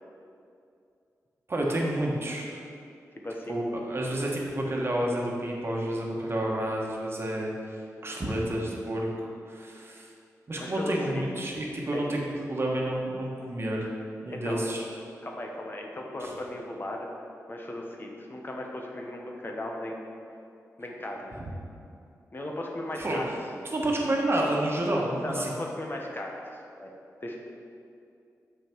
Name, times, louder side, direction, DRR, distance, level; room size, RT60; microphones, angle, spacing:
voice 1, 1.5-2.6 3.5-10.1 10.5-13.9 14.2-14.8 16.2-16.3 23.0-23.2 23.6-25.5, right 1 dB, 40° right, -2 dB, 1.3 m, -30 dB
voice 2, 3.2-3.9 10.6-11.3 11.9-12.0 14.3-14.6 15.2-17.1 17.5-20.1 20.8-21.4 22.3-23.3 25.2-26.9 27.2-27.4, left 1 dB, 35° left, 0 dB, 1.0 m, -37 dB
6.8 x 5.8 x 4.6 m, 2.5 s
cardioid pair, 70°, 6 cm